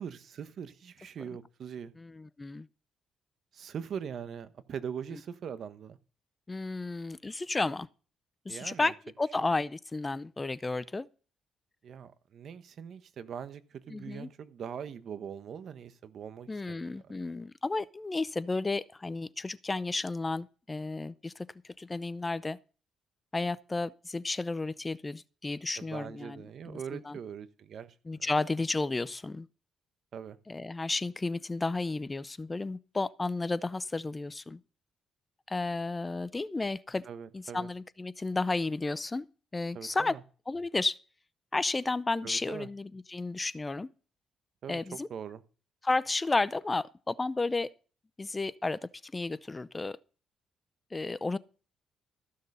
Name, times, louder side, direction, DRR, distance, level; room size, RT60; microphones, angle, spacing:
voice 1, 0.0-1.9 3.5-6.0 8.5-8.9 9.4-9.5 11.8-16.8 25.8-28.2 30.1-30.4 37.0-37.7 39.7-40.2 42.2-42.7 44.6-45.4, right 7 dB, 60° right, 1.0 m, -42 dB
voice 2, 2.0-2.7 6.5-7.9 8.5-11.1 13.9-14.3 16.5-21.5 21.8-22.6 23.3-27.2 28.1-29.5 30.5-34.6 35.5-37.1 37.3-39.3 39.5-40.1 40.5-41.0 41.5-43.9 44.7-45.1 45.8-47.7 48.2-50.0 50.9-51.4, left 3 dB, 20° left, 0.5 m, -32 dB
14.5 x 6.6 x 5.4 m
cardioid pair, 90°, 0 cm